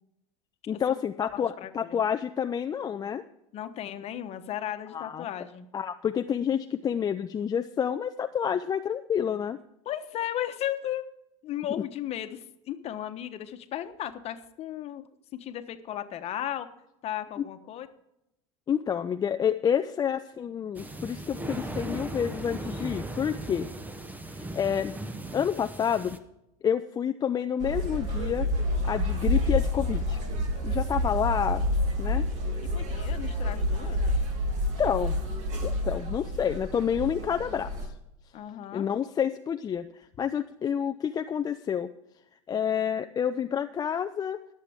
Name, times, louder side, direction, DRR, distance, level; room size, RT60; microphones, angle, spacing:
voice 1, 0.7-3.2 4.9-5.3 5.7-9.6 17.4-17.5 18.7-23.7 24.5-24.9 25.3-26.2 26.6-28.5 28.8-30.2 30.6-31.6 32.0-32.3 33.0-33.1 34.8-35.2 35.6-37.9 38.7-41.9 42.5-44.4, left 8 dB, 25° left, 7 dB, 0.4 m, -29 dB
voice 2, 1.3-2.0 3.5-5.7 9.8-11.0 11.4-15.0 15.3-16.7 17.0-17.9 32.7-34.0 38.3-38.9, left 11 dB, 40° left, 9 dB, 1.2 m, -35 dB
sound 1, 20.7-26.2, right 2 dB, 10° right, 1.0 m, -37 dB
sound 2, 27.6-37.9, left 1 dB, 50° right, 3.0 m, -28 dB
21.0 x 7.6 x 3.6 m, 0.84 s
supercardioid pair, 110°, 16 cm